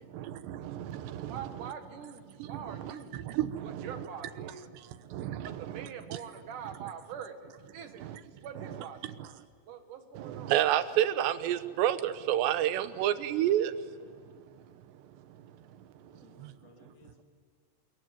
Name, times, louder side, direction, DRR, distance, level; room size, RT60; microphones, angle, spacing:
voice 1, 0.0-1.4 3.3-3.9 5.1-5.6 8.0-8.1 10.2-13.7 16.4-16.5, right 12 dB, 85° right, 3.2 m, -29 dB
voice 2, 1.3-3.2 3.6-4.8 5.4-8.1 8.4-9.4 9.6-10.7, right 7 dB, 55° right, 2.9 m, -44 dB
voice 3, 16.0-17.2, left 4 dB, 50° left, 4.3 m, -60 dB
26.5 x 22.5 x 9.3 m
omnidirectional pair, 4.9 m